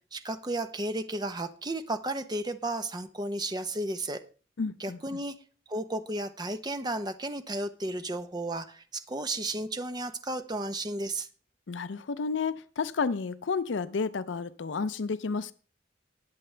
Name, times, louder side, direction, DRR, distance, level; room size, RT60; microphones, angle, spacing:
voice 1, 0.1-4.2 4.8-5.4 5.7-11.3, right 1 dB, 20° right, 0.8 m, -33 dB
voice 2, 4.6-5.0 11.7-15.5, left 4 dB, 70° left, 0.5 m, -31 dB
20.0 x 7.7 x 3.3 m
head